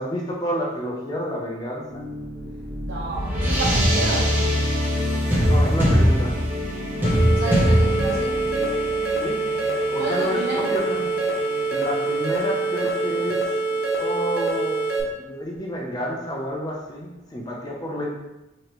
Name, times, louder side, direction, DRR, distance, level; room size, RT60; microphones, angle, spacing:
voice 1, 0.0-2.0 5.4-6.4 9.2-9.4 9.9-11.1 11.7-13.5 14.0-18.1, equal, 20° left, -3 dB, 0.6 m, -30 dB
sound 1, 1.9-8.9, right 1 dB, 35° right, 0.4 m, -37 dB
sound 2, 2.3-13.0, equal, 10° right, 0.9 m, -23 dB
voice 2, 2.8-4.6 7.3-8.4 10.0-10.7 13.1-13.2 15.0-15.1, right 2 dB, 85° right, -6 dB, 0.7 m, -30 dB
sound 3, 7.0-15.0, right 3 dB, 55° left, 1.0 m, -25 dB
4.9 x 3.0 x 3.0 m, 0.95 s
head